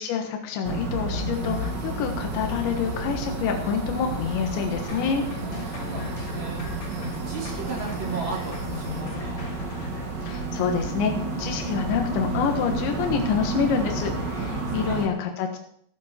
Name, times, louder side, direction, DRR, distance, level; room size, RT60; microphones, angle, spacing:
voice 1, 0.0-5.2 10.2-11.1 11.4-15.6, left 7 dB, 75° left, 3 dB, 3.6 m, -27 dB
sound 1, 0.6-15.1, right 3 dB, 60° right, 1.1 m, -31 dB
sound 2, 1.3-9.0, right 5 dB, 80° right, 4.7 m, -45 dB
sound 3, 4.9-10.1, left 3 dB, 40° left, 1.8 m, -41 dB
voice 2, 5.4-9.4 14.4-14.9, right 1 dB, 30° right, -3 dB, 3.3 m, -36 dB
14.0 x 12.0 x 4.4 m, 0.67 s
omnidirectional pair, 5.4 m